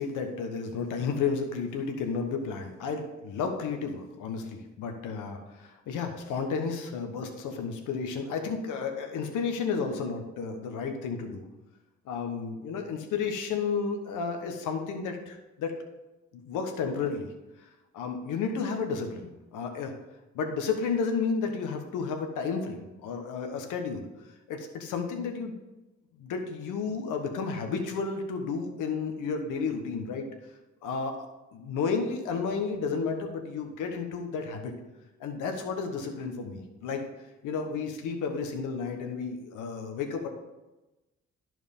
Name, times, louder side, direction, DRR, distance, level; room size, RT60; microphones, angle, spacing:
voice 1, 0.0-11.4 12.0-15.8 16.3-17.3 17.6-17.7 17.9-20.0 20.3-24.1 24.5-25.5 26.2-30.3 30.8-31.3 31.5-34.7 35.2-37.0 37.4-40.3, left 5 dB, 90° left, 4 dB, 1.3 m, -32 dB
11.5 x 4.7 x 5.4 m, 1.1 s
cardioid pair, 90°, 30 cm